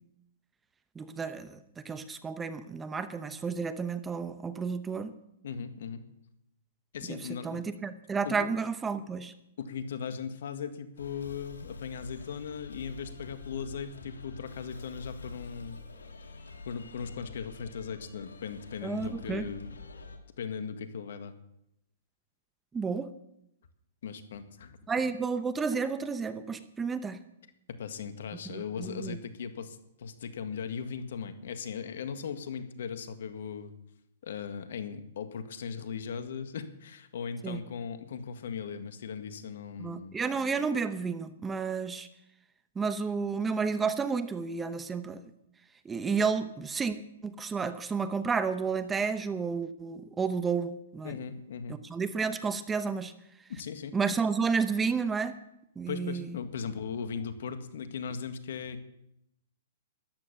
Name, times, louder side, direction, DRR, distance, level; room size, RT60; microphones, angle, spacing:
voice 1, 0.9-5.1 7.1-7.2 7.4-9.3 18.8-19.5 22.7-23.1 24.9-27.2 28.5-29.2 37.4-37.6 39.8-42.1 42.8-45.2 45.8-47.0 47.2-51.1 51.9-53.1 53.9-55.3 55.8-56.3, right 5 dB, 15° right, 12 dB, 1.0 m, -31 dB
voice 2, 5.4-6.0 6.9-7.8 8.2-8.5 9.6-15.8 16.6-19.8 20.4-21.3 24.0-24.8 27.7-33.7 34.2-40.2 51.0-51.8 53.5-53.9 55.9-58.8, left 6 dB, 70° left, 9 dB, 1.8 m, -38 dB
sound 1, 11.0-20.2, left 3 dB, 90° left, 2.3 m, -46 dB
14.0 x 11.5 x 6.9 m, 0.81 s
hypercardioid pair, 130°, 0 cm